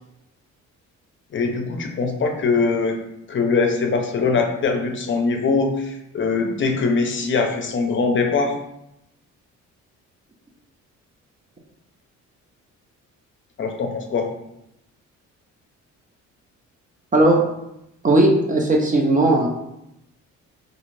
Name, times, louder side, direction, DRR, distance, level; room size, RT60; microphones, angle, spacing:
voice 1, 1.3-3.0 3.3-8.6 13.6-14.3, left 4 dB, 40° left, 3 dB, 0.5 m, -22 dB
voice 2, 17.1-17.4 18.0-19.5, right 2 dB, 25° right, 0 dB, 0.5 m, -17 dB
2.5 x 2.4 x 3.2 m, 0.84 s
cardioid pair, 90°, 30 cm